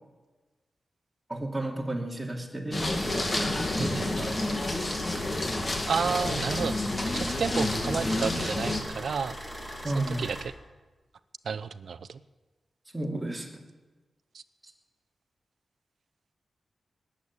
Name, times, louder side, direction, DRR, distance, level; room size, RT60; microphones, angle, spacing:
voice 1, 1.3-4.1 4.6-4.9 9.8-10.2 12.9-13.6, right 1 dB, 10° right, 0 dB, 2.8 m, -33 dB
sound 1, 2.7-8.8, left 2 dB, 30° left, 2.2 m, -29 dB
sound 2, 2.8-10.4, equal, 5° left, 3.4 m, -40 dB
voice 2, 3.8-4.3 5.9-6.7 7.1-9.4 9.9-10.5 11.4-12.2 14.3-14.4, right 6 dB, 75° right, 14 dB, 0.6 m, -31 dB
20.0 x 8.4 x 8.4 m, 1.2 s
wide cardioid pair, 95°, 0 cm